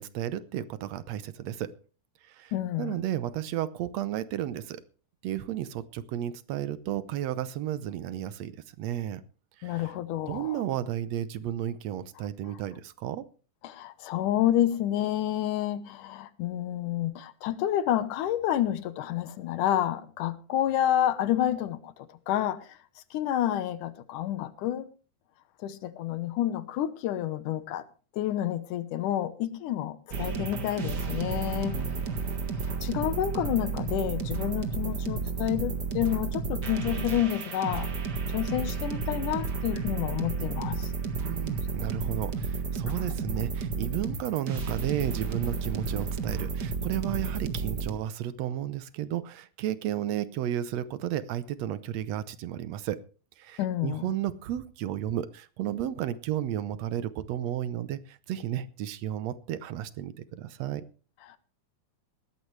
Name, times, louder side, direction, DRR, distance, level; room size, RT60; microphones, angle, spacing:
voice 1, 0.0-1.7 2.2-2.5 2.8-4.8 5.2-8.5 8.8-9.2 9.6-9.9 10.3-13.2 31.7-32.0 41.2-53.0 53.4-60.8, right 11 dB, 70° right, 1.8 m, -33 dB
voice 2, 2.5-3.0 9.6-10.6 13.6-21.9 22.3-22.8 23.1-24.9 25.6-27.8 28.1-31.8 32.8-37.9 38.3-40.9 53.6-54.0, left 12 dB, 90° left, 2.6 m, -29 dB
sound 1, 30.1-47.9, right 5 dB, 40° right, 1.8 m, -32 dB
18.5 x 13.5 x 3.3 m
omnidirectional pair, 3.5 m